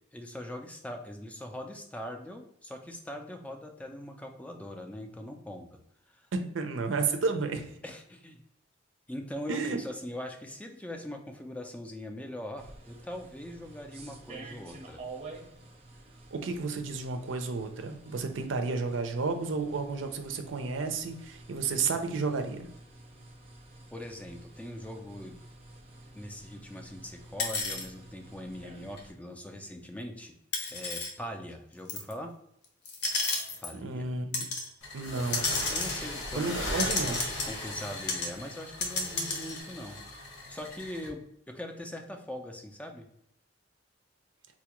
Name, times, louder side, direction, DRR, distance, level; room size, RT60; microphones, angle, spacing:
voice 1, 0.1-5.7 6.1-6.3 7.8-8.4 9.1-15.0 23.9-25.4 26.1-30.3 30.7-32.3 33.6-34.1 35.2-35.3 35.7-37.2 37.5-40.0 40.3-43.1, left 1 dB, 5° left, 4 dB, 0.3 m, -41 dB
voice 2, 6.3-7.8 9.5-9.8 16.3-22.7 33.7-34.4 34.9-35.4 36.3-37.2, right 4 dB, 80° right, 7 dB, 0.5 m, -32 dB
sound 1, 12.6-29.1, right 2 dB, 35° right, 0.6 m, -50 dB
sound 2, 27.4-27.9 29.0-29.1 30.5-31.1 31.9-32.1 32.9-33.7 34.3-34.7 35.3-37.8 38.1-38.3 38.6-39.6, left 3 dB, 60° left, 0.7 m, -32 dB
sound 3, 34.8-41.1, left 1 dB, 85° left, 1.1 m, -38 dB
4.1 x 2.3 x 2.9 m, 0.73 s
head